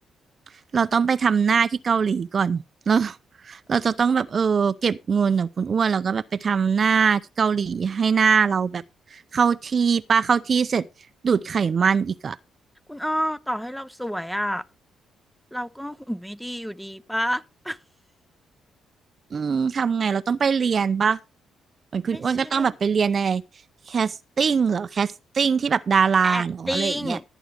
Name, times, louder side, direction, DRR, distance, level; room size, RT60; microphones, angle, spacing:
voice 1, 0.7-3.2 3.4-8.8 9.1-10.9 11.2-12.4 19.3-21.2 21.9-23.4 23.9-27.2, right 6 dB, 45° right, 0.5 m, -22 dB
voice 2, 12.9-14.6 15.5-17.8 22.1-22.7 26.2-27.2, equal, ahead, 0.7 m, -29 dB
15.0 x 9.2 x 3.4 m
cardioid pair, 90°, 0 cm